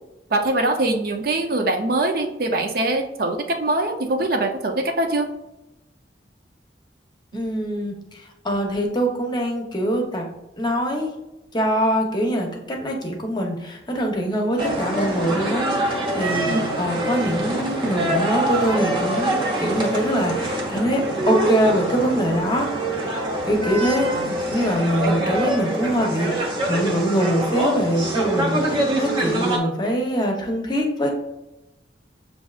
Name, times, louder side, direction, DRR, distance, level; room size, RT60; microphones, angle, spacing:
voice 1, 0.3-5.3 7.3-7.4 16.5-16.8 24.0-24.4 25.0-25.3, right 2 dB, 55° right, 4 dB, 0.6 m, -23 dB
voice 2, 7.3-10.3 10.6-11.1 11.5-22.7 23.5-31.1, equal, 25° left, 1 dB, 0.8 m, -23 dB
sound 1, 14.6-29.6, right 1 dB, 30° right, 0.8 m, -24 dB
6.8 x 2.6 x 2.4 m, 0.95 s
head